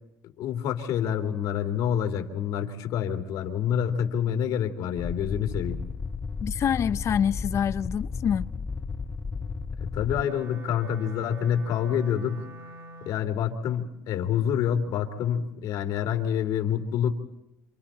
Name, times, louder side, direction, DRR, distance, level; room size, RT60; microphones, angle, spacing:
voice 1, 0.4-5.8 9.9-12.5 13.0-17.1, left 8 dB, 75° left, 3.0 m, -27 dB
sound 1, 5.0-10.2, left 4 dB, 25° left, 0.8 m, -33 dB
voice 2, 6.4-8.5, left 8 dB, 50° left, 0.8 m, -26 dB
Wind instrument woodwind instrument, 10.0-13.4, right 1 dB, 55° right, 2.7 m, -45 dB
29.0 x 28.0 x 4.4 m
cardioid pair, 95°, 6 cm